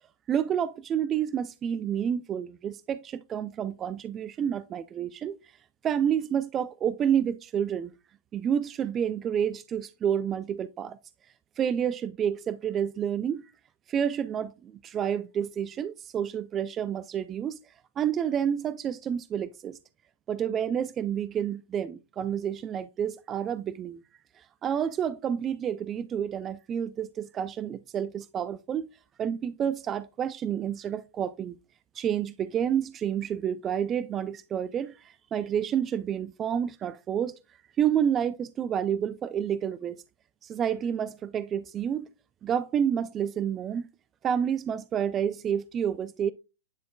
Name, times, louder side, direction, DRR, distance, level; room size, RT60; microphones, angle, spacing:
voice 1, 0.3-5.4 5.8-7.9 8.3-11.0 11.6-13.5 13.9-17.6 18.0-19.8 20.3-24.0 24.4-28.9 29.2-31.6 31.9-37.4 37.8-40.0 40.4-42.1 42.4-43.9 44.2-46.3, right 8 dB, 25° right, 0.3 m, -29 dB
10.5 x 4.2 x 2.2 m
hypercardioid pair, 120°, 0 cm